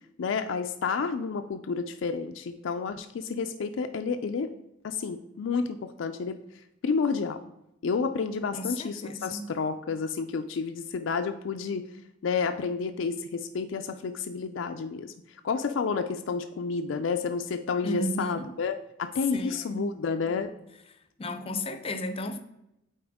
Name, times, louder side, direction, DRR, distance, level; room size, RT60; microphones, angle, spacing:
voice 1, 0.2-4.5 4.8-6.4 6.8-7.4 7.8-11.9 12.2-15.1 15.4-20.5, left 5 dB, 75° left, 0.4 m, -30 dB
voice 2, 8.5-9.5 17.8-18.5 19.3-19.9 21.2-22.4, left 1 dB, 30° left, 0.6 m, -34 dB
8.5 x 4.3 x 3.5 m
head